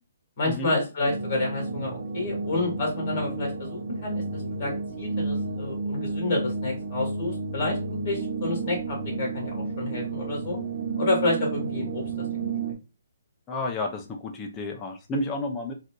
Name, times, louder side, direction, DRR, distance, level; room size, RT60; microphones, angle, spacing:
voice 1, 0.4-10.6 11.0-12.0, left 2 dB, 35° left, -1 dB, 1.8 m, -29 dB
sound 1, 1.0-12.7, right 4 dB, 45° right, 0.7 m, -31 dB
voice 2, 13.5-15.7, left 2 dB, 15° left, 2 dB, 0.4 m, -31 dB
4.0 x 2.5 x 2.2 m, 0.29 s
hypercardioid pair, 165°, 0 cm